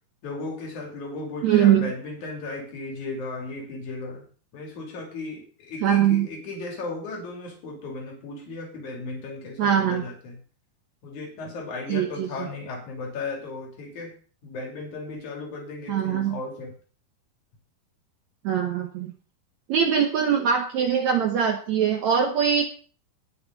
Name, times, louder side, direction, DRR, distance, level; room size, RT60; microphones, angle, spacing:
voice 1, 0.2-4.2 4.5-10.4 11.0-14.1 14.4-16.7, left 3 dB, 50° left, 0 dB, 4.4 m, -35 dB
voice 2, 1.4-1.9 5.8-6.3 9.6-10.0 11.9-12.5 15.9-16.4 18.4-19.1 19.7-22.7, right 8 dB, 70° right, 4 dB, 1.8 m, -22 dB
19.0 x 6.8 x 4.0 m, 0.40 s
omnidirectional pair, 4.5 m